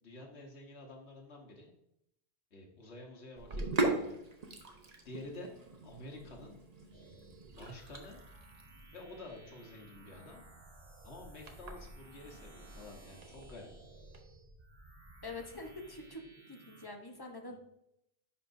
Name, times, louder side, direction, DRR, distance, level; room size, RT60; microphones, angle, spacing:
voice 1, 0.0-1.7 2.5-4.2 5.0-5.5 5.8-6.6 7.5-8.2 8.9-10.4 11.0-13.7 17.4-17.6, left 2 dB, 85° left, 1 dB, 1.5 m, -50 dB
Sink (filling or washing), 3.4-14.2, right 2 dB, 40° right, 0.9 m, -41 dB
sound 1, 6.9-16.9, right 2 dB, 60° right, 1.6 m, -57 dB
voice 2, 15.2-17.6, left 2 dB, 25° left, 2 dB, 0.8 m, -45 dB
9.9 x 5.2 x 2.6 m, 0.79 s
omnidirectional pair, 1.1 m